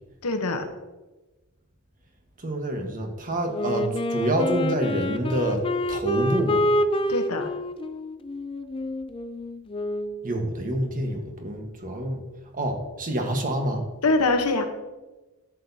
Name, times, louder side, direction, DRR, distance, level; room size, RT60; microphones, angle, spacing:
voice 1, 0.2-0.7 7.1-7.5 14.0-14.6, left 2 dB, 85° left, 6 dB, 1.1 m, -23 dB
voice 2, 2.4-6.7 10.2-12.2 12.5-13.8, right 1 dB, 40° right, 3 dB, 1.3 m, -27 dB
Wind instrument woodwind instrument, 3.5-10.2, left 1 dB, 25° left, 0.4 m, -27 dB
11.0 x 8.1 x 2.8 m, 1.1 s
head